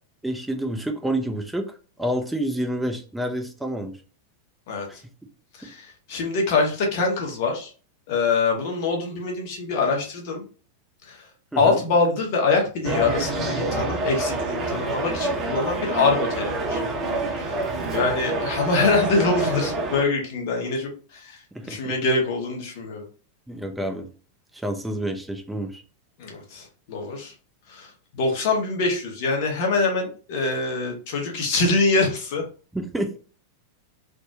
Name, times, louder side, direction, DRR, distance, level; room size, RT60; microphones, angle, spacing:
voice 1, 0.2-1.7 2.0-4.0 4.9-5.0 5.6-5.7 11.5-11.8 21.5-22.0 23.5-24.1 24.5-25.8 32.7-33.2, right 1 dB, 5° right, 4 dB, 0.4 m, -28 dB
voice 2, 5.6-7.7 8.1-10.4 11.1-11.2 11.6-16.8 17.4-17.5 17.9-23.0 26.2-27.3 27.7-32.4, left 3 dB, 50° left, 1 dB, 0.9 m, -24 dB
sound 1, 12.8-20.0, right 2 dB, 30° right, 0.8 m, -27 dB
3.4 x 2.0 x 2.7 m, 0.38 s
figure-of-eight pair, 90°, 0 cm